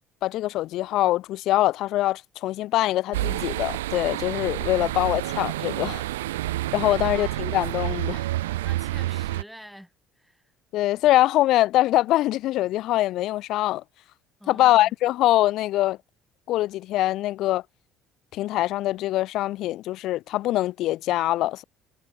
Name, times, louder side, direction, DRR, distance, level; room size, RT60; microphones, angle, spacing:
voice 1, 0.2-6.0 6.7-8.2 10.7-13.8 14.5-16.0 16.5-17.6 18.3-21.6, left 15 dB, 65° left, 0.5 m, -23 dB
sound 1, 3.1-9.4, right 16 dB, 90° right, 0.4 m, -29 dB
voice 2, 4.7-5.4 6.8-7.6 8.6-10.5 14.4-14.9, equal, ahead, 7.8 m, -47 dB
hypercardioid pair, 70°, 0 cm